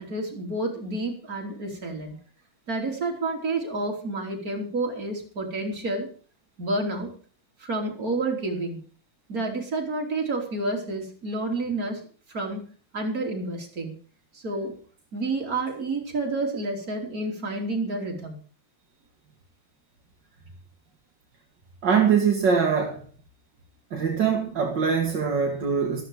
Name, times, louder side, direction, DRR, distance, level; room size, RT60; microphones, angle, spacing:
voice 1, 0.0-2.2 2.7-6.1 6.6-7.1 7.6-8.8 9.3-12.6 12.9-13.9 14.3-14.8 15.1-18.4, right 2 dB, 45° right, 1 dB, 3.7 m, -29 dB
voice 2, 21.8-23.0 23.9-26.0, right 6 dB, 60° right, 1 dB, 2.6 m, -23 dB
14.0 x 13.5 x 4.8 m, 0.41 s
omnidirectional pair, 2.2 m